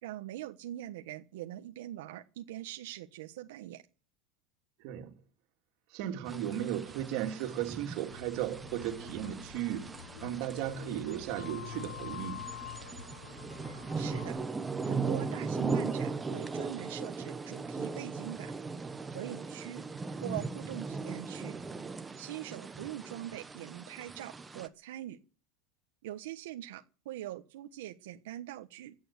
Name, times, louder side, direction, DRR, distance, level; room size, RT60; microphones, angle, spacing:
voice 1, 0.0-3.8 13.9-14.4 14.9-18.5 19.1-19.8 20.2-21.6 22.2-25.2 26.0-28.9, right 14 dB, 80° right, 1.3 m, -43 dB
voice 2, 4.8-5.1 5.9-12.5, right 11 dB, 50° right, 2.7 m, -36 dB
sound 1, 6.3-24.7, right 4 dB, 10° right, 1.0 m, -39 dB
sound 2, 8.1-14.3, left 8 dB, 85° left, 4.4 m, -46 dB
16.5 x 8.9 x 9.8 m
supercardioid pair, 165°, 0 cm